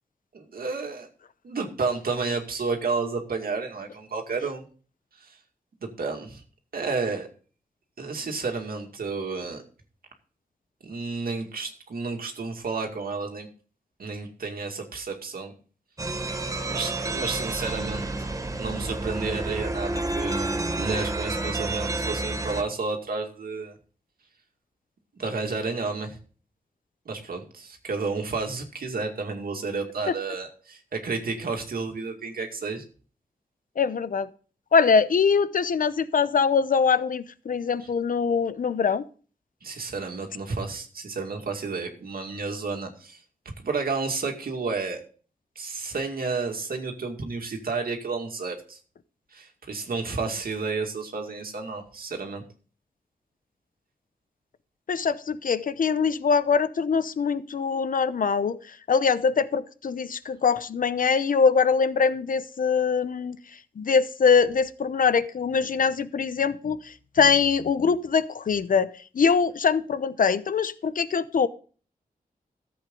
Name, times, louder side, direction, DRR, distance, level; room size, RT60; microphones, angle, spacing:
voice 1, 0.3-1.1 1.4-4.7 5.2-5.4 5.8-6.4 6.7-7.3 8.0-9.6 10.8-13.5 14.0-15.5 16.7-18.1 18.6-20.5 20.8-23.8 25.2-26.2 27.1-32.8 37.8-37.9 39.6-43.2 43.6-45.0 45.6-48.8 49.3-52.4, right 4 dB, 85° right, 3 dB, 2.3 m, -31 dB
sound 1, 16.0-22.6, right 2 dB, 20° right, 1.1 m, -30 dB
voice 2, 33.8-34.3 34.7-39.0 54.9-58.6 58.9-63.4 63.8-71.5, left 5 dB, 70° left, 14 dB, 0.8 m, -23 dB
14.5 x 7.9 x 3.9 m, 0.39 s
wide cardioid pair, 140°, 15 cm